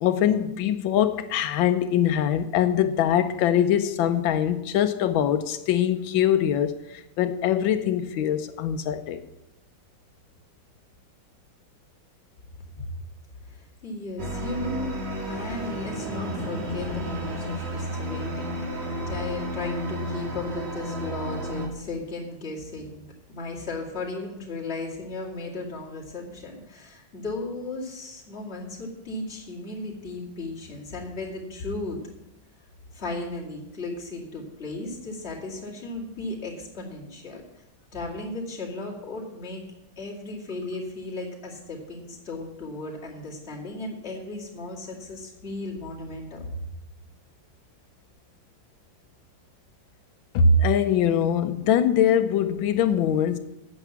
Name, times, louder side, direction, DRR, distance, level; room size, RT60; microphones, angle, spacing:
voice 1, 0.0-9.2 50.3-53.4, left 8 dB, 85° left, 9 dB, 1.5 m, -23 dB
voice 2, 13.4-18.7 19.1-32.0 32.9-37.6 37.9-39.6 40.0-46.6, left 2 dB, 30° left, -5 dB, 2.7 m, -35 dB
sound 1, 14.2-21.7, equal, 35° right, 1.8 m, -32 dB
9.0 x 7.1 x 7.3 m, 0.89 s
omnidirectional pair, 2.1 m